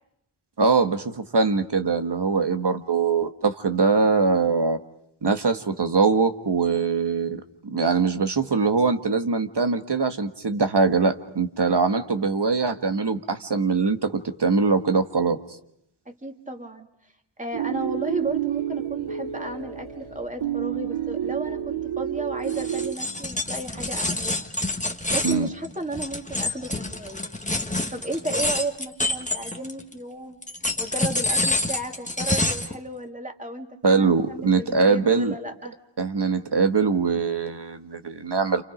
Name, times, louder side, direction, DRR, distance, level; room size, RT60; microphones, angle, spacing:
voice 1, 0.6-4.8 5.2-7.4 7.6-15.4 25.2-25.5 33.8-35.3 36.0-38.6, right 4 dB, 60° right, 7 dB, 1.7 m, -22 dB
voice 2, 16.1-16.9 17.4-24.5 25.1-27.3 27.9-30.4 30.8-35.8, right 2 dB, 15° right, 4 dB, 2.5 m, -34 dB
sound 1, 17.5-23.0, right 10 dB, 85° right, 1.1 m, -29 dB
sound 2, 22.5-29.9 30.4-32.8, left 2 dB, 15° left, 1.6 m, -27 dB
29.0 x 28.5 x 5.2 m, 0.73 s
wide cardioid pair, 65°, 47 cm